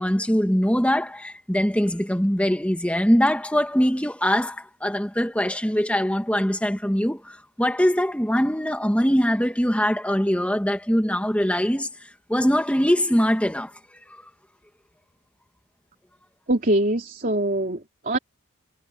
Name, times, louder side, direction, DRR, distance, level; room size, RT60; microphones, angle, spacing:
voice 1, 0.0-11.9 12.3-13.7 14.1-14.2, equal, 5° left, 1.9 m, -22 dB
voice 2, 16.5-18.2, right 1 dB, 40° right, 3.3 m, -23 dB
head